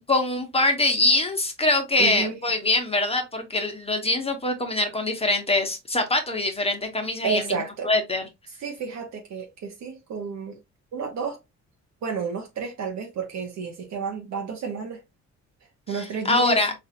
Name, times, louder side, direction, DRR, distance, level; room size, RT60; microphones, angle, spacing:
voice 1, 0.1-7.4 7.8-8.2 15.9-16.0 16.2-16.7, left 2 dB, 20° left, 1.0 m, -23 dB
voice 2, 2.0-2.4 7.2-7.9 8.6-10.6 10.9-11.4 12.0-15.0 15.9-16.6, right 5 dB, 65° right, 0.8 m, -31 dB
4.1 x 2.5 x 2.7 m
cardioid pair, 90°, 30 cm